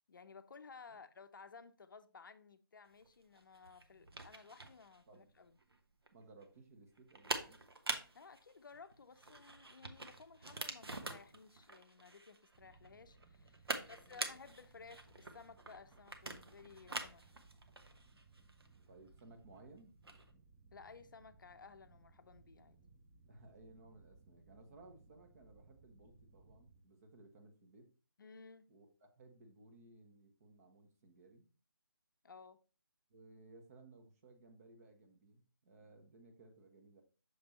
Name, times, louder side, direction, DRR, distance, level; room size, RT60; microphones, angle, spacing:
voice 1, 0.1-5.6 8.1-17.3 20.7-22.8 28.2-28.7 32.2-32.6, left 5 dB, 55° left, 0.5 m, -57 dB
sound 1, 2.9-20.3, right 2 dB, 80° right, 1.1 m, -46 dB
voice 2, 6.1-7.6 13.6-14.2 14.7-14.8 18.9-20.0 23.3-27.9 28.7-28.9 29.2-31.4 33.1-37.0, right 2 dB, 40° right, 1.3 m, -60 dB
sound 2, 12.5-26.8, right 3 dB, 15° right, 0.6 m, -65 dB
6.6 x 3.4 x 4.2 m
figure-of-eight pair, 155°, 13 cm